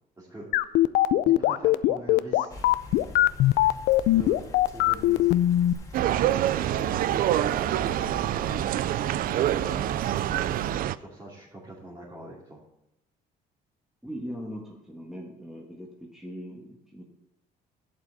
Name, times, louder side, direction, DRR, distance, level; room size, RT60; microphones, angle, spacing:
voice 1, 0.2-0.8 1.2-2.7 4.1-4.4 4.6-5.3 6.5-10.1 10.9-12.6, right 1 dB, 15° right, -6 dB, 2.7 m, -43 dB
sound 1, 0.5-5.7, left 15 dB, 80° left, 0.5 m, -20 dB
sound 2, 2.5-10.8, left 1 dB, 20° left, 1.9 m, -43 dB
sound 3, 5.9-11.0, right 12 dB, 60° right, 0.4 m, -26 dB
voice 2, 14.0-17.0, equal, ahead, -2 dB, 1.6 m, -40 dB
11.5 x 8.4 x 4.1 m, 0.83 s
cardioid pair, 110°, 17 cm